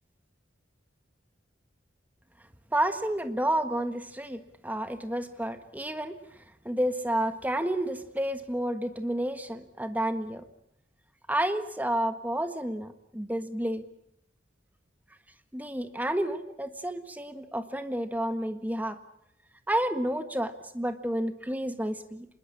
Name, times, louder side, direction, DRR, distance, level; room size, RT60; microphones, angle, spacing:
voice 1, 2.7-6.2 6.6-10.4 11.3-13.8 15.5-19.0 19.7-22.3, right 1 dB, 10° right, 9 dB, 1.5 m, -30 dB
26.0 x 21.0 x 8.7 m, 0.78 s
head